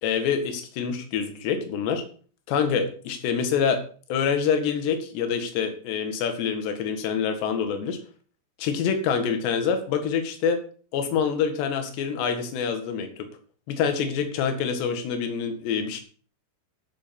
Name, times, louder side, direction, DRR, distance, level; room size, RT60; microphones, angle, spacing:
voice 1, 0.0-2.0 2.5-3.8 4.1-8.0 8.6-10.6 10.9-13.1 13.7-16.0, left 6 dB, 65° left, 6 dB, 3.7 m, -26 dB
13.0 x 6.9 x 7.0 m, 0.43 s
omnidirectional pair, 5.8 m